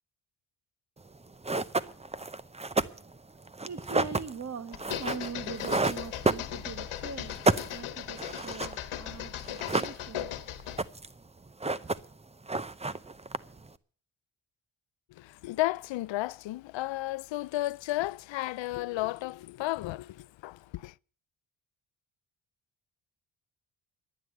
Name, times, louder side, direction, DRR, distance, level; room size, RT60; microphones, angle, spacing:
sound 1, 1.1-1.2 1.4-6.9 7.2-9.1 9.4-10.3 10.6-11.2 11.5-12.2 12.5-13.7, right 3 dB, 15° right, 0.6 m, -30 dB
voice 1, 3.7-10.3, right 5 dB, 35° right, 1.2 m, -42 dB
sound 2, 4.7-10.9, left 11 dB, 85° left, 1.3 m, -38 dB
voice 2, 15.1-20.9, left 16 dB, 65° left, 0.5 m, -33 dB
12.0 x 9.8 x 7.9 m
cardioid pair, 80°, 48 cm